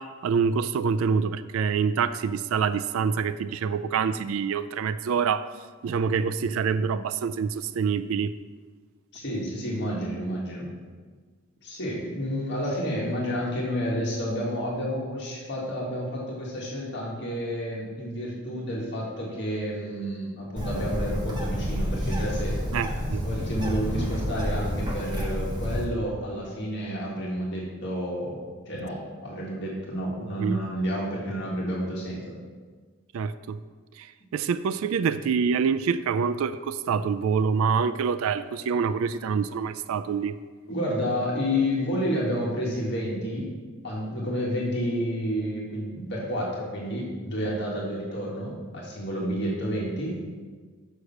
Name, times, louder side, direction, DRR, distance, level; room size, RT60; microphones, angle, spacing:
voice 1, 0.0-5.5 5.8-8.3 22.7-23.2 30.4-30.6 33.1-33.6 34.0-34.1 34.3-40.4, right 6 dB, 70° right, 14 dB, 0.3 m, -26 dB
voice 2, 9.1-10.7 11.6-22.6 23.2-32.3 40.7-43.5 43.8-50.2, equal, 50° left, -4 dB, 1.8 m, -30 dB
Bird, 20.6-25.8, equal, 20° right, 1.2 m, -29 dB
6.5 x 6.4 x 5.8 m, 1.5 s
head